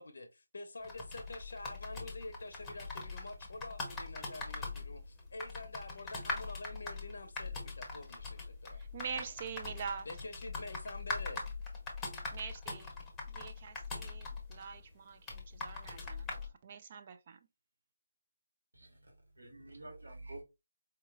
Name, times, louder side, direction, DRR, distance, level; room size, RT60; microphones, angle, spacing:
voice 1, 0.0-8.8 10.1-11.5, left 2 dB, 60° left, 0.7 m, -47 dB
sound 1, 0.8-16.5, left 3 dB, 10° left, 0.8 m, -42 dB
voice 2, 8.7-10.1 12.3-12.9 13.3-17.5, right 6 dB, 35° right, 0.4 m, -45 dB
voice 3, 18.7-20.4, right 2 dB, 75° right, 1.7 m, -49 dB
4.5 x 3.0 x 2.3 m
figure-of-eight pair, 150°, 0 cm